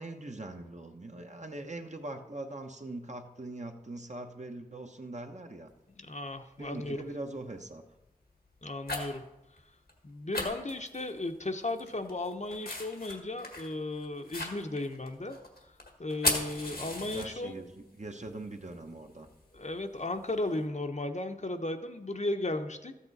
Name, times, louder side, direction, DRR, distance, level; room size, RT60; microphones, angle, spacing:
voice 1, 0.0-5.7 6.6-7.8 17.1-19.3, right 2 dB, 50° right, 4 dB, 1.0 m, -42 dB
sound 1, 5.7-5.8 6.6-6.9 7.4-7.7 8.4-9.2 9.6-9.7 9.9-10.0 10.3-11.4 11.7-17.7 18.0-20.5, left 2 dB, 90° left, 1.7 m, -37 dB
voice 2, 6.0-7.0 8.6-9.2 10.0-15.4 16.0-17.6 19.5-22.9, left 2 dB, 50° left, 6 dB, 0.8 m, -35 dB
13.0 x 8.3 x 4.1 m, 0.97 s
wide cardioid pair, 45°, 16 cm